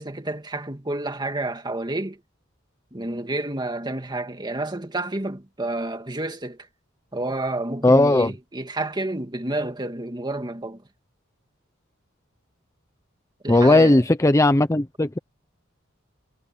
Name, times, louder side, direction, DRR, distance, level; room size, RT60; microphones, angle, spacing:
voice 1, 0.0-2.2 2.9-6.7 7.1-10.8 13.4-14.0, right 2 dB, 20° right, 2.4 m, -29 dB
voice 2, 7.8-8.3 13.5-15.2, left 2 dB, 15° left, 0.6 m, -17 dB
head